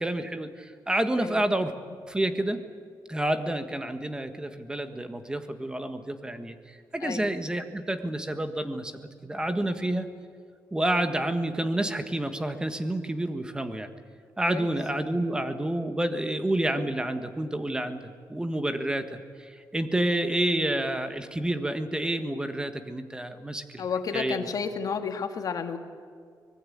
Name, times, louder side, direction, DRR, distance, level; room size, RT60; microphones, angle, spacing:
voice 1, 0.0-1.7 2.1-2.6 3.1-10.1 10.7-13.9 14.4-23.9 24.1-24.5, right 1 dB, 10° right, 9 dB, 1.5 m, -29 dB
voice 2, 7.0-7.4 9.6-9.9 14.5-14.7 23.8-25.8, left 6 dB, 55° left, 7 dB, 2.0 m, -32 dB
25.0 x 20.5 x 8.7 m, 2.1 s
wide cardioid pair, 150°, 7 cm